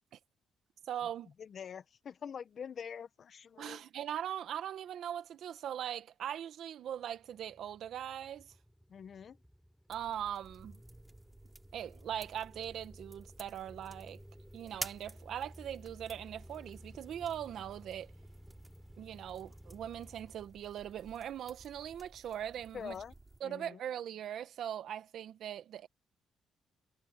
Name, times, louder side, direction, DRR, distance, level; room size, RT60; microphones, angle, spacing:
voice 1, 0.8-1.3 3.6-8.5 9.9-10.8 11.7-14.2 14.5-18.1 19.0-23.0 23.4-25.9, right 10 dB, 70° right, 1.7 m, -40 dB
voice 2, 1.4-3.8 8.9-9.4 22.7-23.1 23.4-23.8, left 7 dB, 55° left, 1.6 m, -45 dB
sound 1, 7.0-21.3, equal, ahead, 4.7 m, -56 dB
sound 2, 9.9-23.4, right 2 dB, 20° right, 7.3 m, -52 dB
cardioid pair, 90°, 0 cm